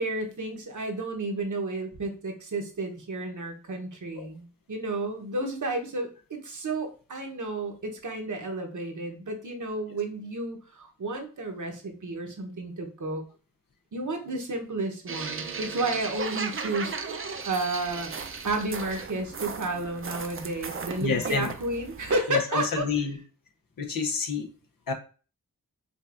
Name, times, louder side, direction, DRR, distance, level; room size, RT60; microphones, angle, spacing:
voice 1, 0.0-13.2 13.9-18.1 18.4-22.9, right 2 dB, 65° right, 3 dB, 1.0 m, -32 dB
sound 1, 15.1-22.2, right 5 dB, 40° right, 0.5 m, -36 dB
voice 2, 21.0-21.5 22.3-23.2 23.8-24.5 24.9-25.0, left 5 dB, 85° left, 5 dB, 0.8 m, -28 dB
5.1 x 2.3 x 2.5 m, 0.37 s
cardioid pair, 50°, 33 cm